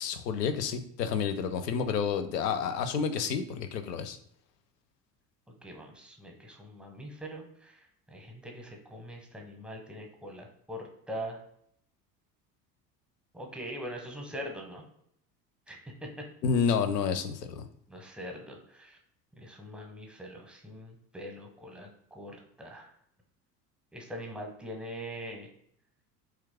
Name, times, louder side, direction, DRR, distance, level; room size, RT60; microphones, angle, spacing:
voice 1, 0.0-4.2 16.4-17.7, left 6 dB, 80° left, 10 dB, 0.6 m, -29 dB
voice 2, 5.6-11.4 13.3-14.8 15.7-16.2 17.9-19.0 19.4-22.9 23.9-25.5, equal, ahead, 1 dB, 0.7 m, -42 dB
2.9 x 2.4 x 3.4 m, 0.71 s
figure-of-eight pair, 70°, 48 cm